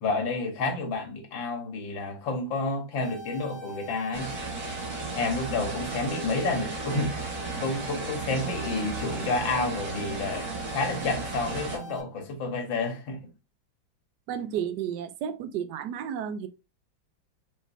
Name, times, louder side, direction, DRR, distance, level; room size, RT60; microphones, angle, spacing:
voice 1, 0.0-4.3 5.1-7.2 7.6-13.2, left 3 dB, 90° left, 1.9 m, -30 dB
sound 1, 3.0-12.0, right 2 dB, 40° left, 1.5 m, -43 dB
sound 2, 4.1-11.8, right 3 dB, 45° right, 1.7 m, -35 dB
voice 2, 14.3-16.5, right 9 dB, 70° right, 1.1 m, -32 dB
5.1 x 3.7 x 2.6 m
omnidirectional pair, 2.0 m